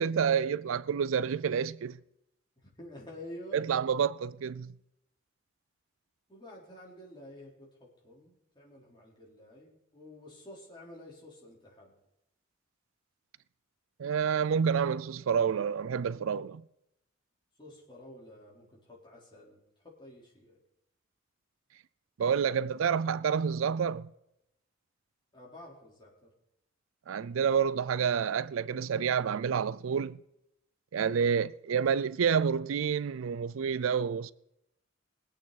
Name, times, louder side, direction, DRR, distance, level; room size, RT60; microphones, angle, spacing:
voice 1, 0.0-2.0 3.5-4.8 14.0-16.6 22.2-24.1 27.1-30.2 30.9-34.3, right 7 dB, 80° right, 0.4 m, -29 dB
voice 2, 2.6-3.7 6.3-11.9 17.6-19.6 19.8-20.6 25.3-26.3, left 1 dB, 20° left, 3.9 m, -50 dB
21.0 x 8.5 x 4.1 m
head